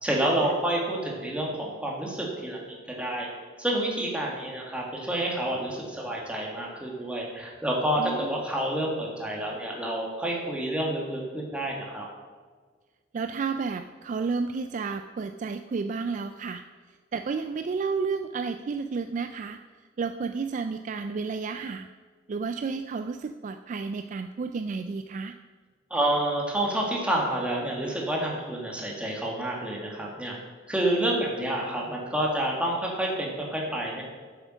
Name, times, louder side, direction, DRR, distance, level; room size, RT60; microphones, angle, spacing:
voice 1, 0.0-3.3 3.6-12.1 25.9-30.3 30.7-34.0, right 1 dB, 5° right, -2 dB, 1.8 m, -29 dB
voice 2, 8.0-8.4 13.1-16.6 17.1-19.6 20.0-21.9 22.3-25.4, right 4 dB, 40° right, 8 dB, 0.3 m, -31 dB
8.1 x 7.2 x 6.2 m, 1.5 s
head